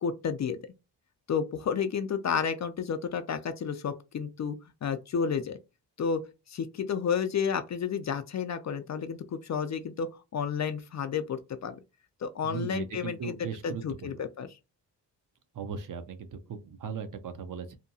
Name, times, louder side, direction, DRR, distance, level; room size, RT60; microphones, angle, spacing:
voice 1, 0.0-0.6 1.3-4.6 4.8-5.6 6.0-6.2 6.5-10.1 10.3-11.7 12.2-13.4 13.6-14.5, left 6 dB, 40° left, 0.4 m, -31 dB
voice 2, 12.4-14.2 15.5-17.8, right 6 dB, 50° right, 0.6 m, -38 dB
2.8 x 2.2 x 2.6 m
cardioid pair, 70°, 43 cm